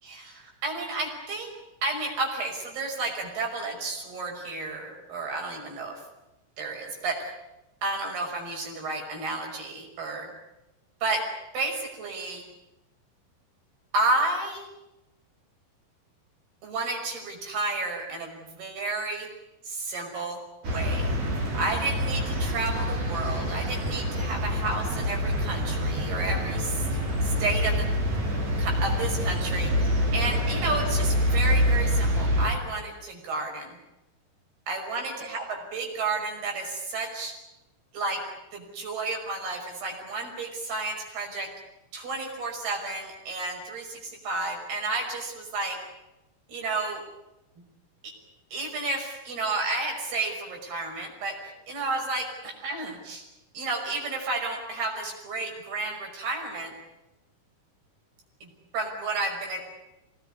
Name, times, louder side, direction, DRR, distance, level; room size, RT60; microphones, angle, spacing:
voice 1, 0.0-1.5 1.8-6.0 6.6-7.2 7.8-10.3 11.0-11.3 11.5-12.4 13.9-14.7 16.6-19.3 19.6-21.2 21.5-27.9 28.6-29.9 30.1-33.8 34.7-37.4 37.9-38.2 38.5-41.5 41.9-45.8 46.5-47.0 48.0-48.1 48.5-53.3 53.5-56.7 58.4-59.6, right 3 dB, 60° right, 2 dB, 7.6 m, -31 dB
sound 1, 20.6-32.5, equal, 40° right, 6.1 m, -26 dB
25.5 x 20.0 x 9.9 m, 0.96 s
omnidirectional pair, 5.2 m